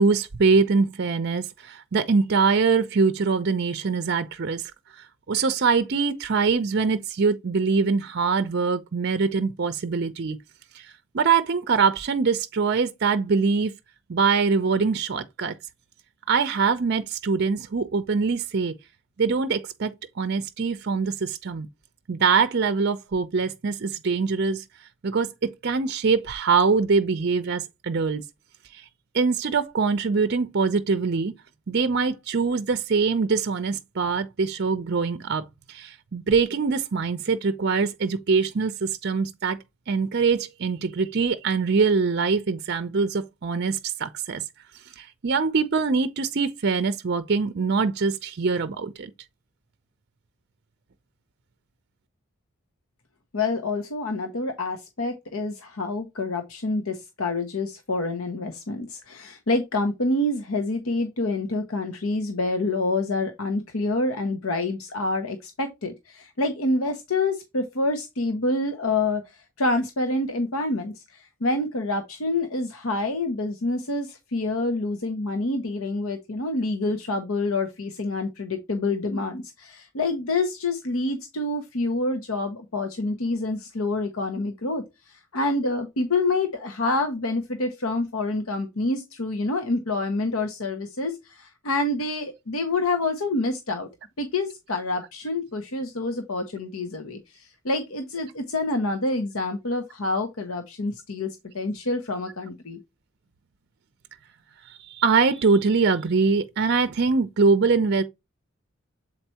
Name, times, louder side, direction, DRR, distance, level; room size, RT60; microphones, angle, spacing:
voice 1, 0.0-10.4 10.7-13.7 14.1-15.5 16.3-18.7 19.2-21.7 22.1-24.6 25.0-28.2 28.7-28.8 29.1-31.3 31.7-39.6 39.9-44.4 45.0-49.1 104.7-108.0, right 4 dB, 50° right, 0.5 m, -23 dB
voice 2, 53.3-93.9 94.2-102.8, left 2 dB, 80° left, 0.9 m, -27 dB
7.5 x 4.5 x 2.8 m
head